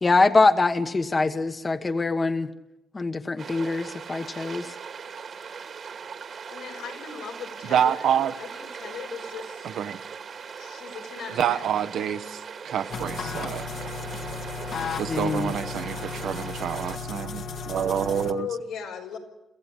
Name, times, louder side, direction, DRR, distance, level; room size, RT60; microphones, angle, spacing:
voice 1, 0.0-2.5 2.9-4.7 15.1-15.5, left 3 dB, 25° left, 9 dB, 1.2 m, -23 dB
sound 1, 3.4-17.0, right 6 dB, 55° right, 2.1 m, -40 dB
voice 2, 6.5-8.1 8.4-9.7 10.5-11.7 18.2-19.2, left 7 dB, 85° left, 1 dB, 5.3 m, -38 dB
voice 3, 7.6-8.3 9.6-10.0 11.4-13.6 15.0-18.5, right 9 dB, 70° right, 9 dB, 1.2 m, -27 dB
sound 2, 12.9-18.3, left 4 dB, 65° left, 1.8 m, -34 dB
24.5 x 15.5 x 9.9 m, 0.94 s
cardioid pair, 90°, 0 cm